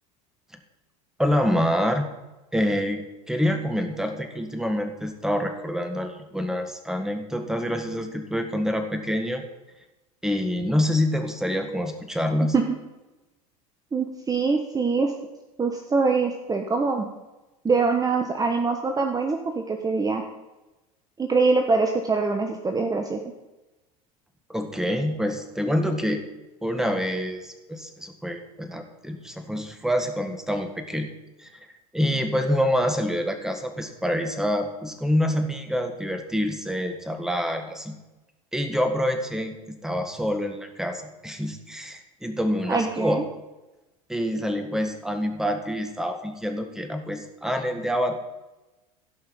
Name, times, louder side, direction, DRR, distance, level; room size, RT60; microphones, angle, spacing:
voice 1, 1.2-2.1 2.5-9.4 10.2-12.5 24.5-26.2 26.6-31.1 31.4-31.5 31.9-37.9 38.5-43.2 44.1-48.2, equal, 5° right, 6 dB, 1.7 m, -26 dB
voice 2, 13.9-15.1 15.6-17.1 17.6-20.2 21.2-23.2 42.7-43.2, right 4 dB, 20° right, 4 dB, 1.1 m, -24 dB
16.5 x 5.5 x 5.4 m, 1.1 s
hypercardioid pair, 85°, 19 cm